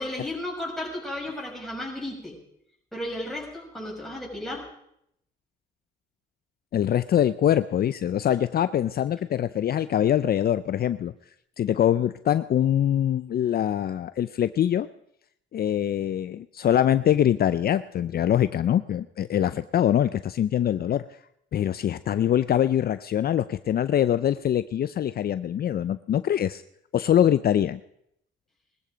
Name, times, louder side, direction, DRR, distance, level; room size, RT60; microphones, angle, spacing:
voice 1, 0.0-2.4 2.9-4.7, left 1 dB, ahead, -3 dB, 6.3 m, -34 dB
voice 2, 6.7-11.1 11.6-14.9 15.5-21.0 21.5-26.6 26.9-27.8, left 10 dB, 50° left, 13 dB, 0.5 m, -23 dB
20.5 x 13.5 x 5.1 m, 0.75 s
cardioid pair, 90°, 20 cm